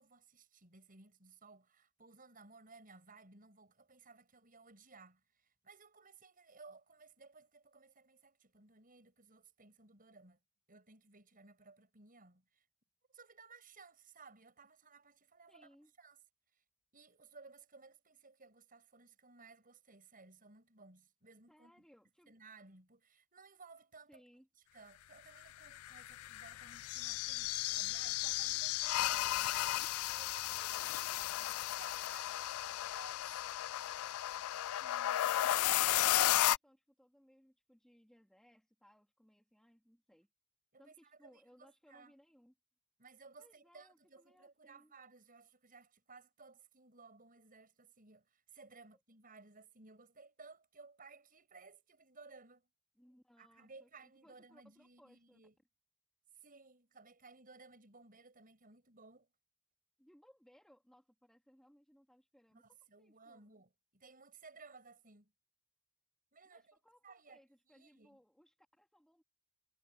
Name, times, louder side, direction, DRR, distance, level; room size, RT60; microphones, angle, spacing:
voice 1, 0.0-10.4 10.7-12.6 13.1-16.2 16.9-21.7 22.3-24.2 24.7-29.6 30.1-30.9 31.4-33.4 40.7-42.1 43.0-52.7 53.4-55.5 56.4-59.3 62.5-65.3 66.3-66.8 67.0-67.4 67.7-68.2, right 4 dB, 40° right, 7.1 m, -59 dB
voice 2, 15.5-15.9 21.5-22.3 24.1-24.5 30.7-31.5 34.8-40.3 40.8-42.5 43.4-44.9 53.0-55.4 60.0-63.6 66.4-69.2, equal, 5° left, 2.6 m, -66 dB
sound 1, 25.6-36.6, left 14 dB, 85° left, 0.3 m, -34 dB
head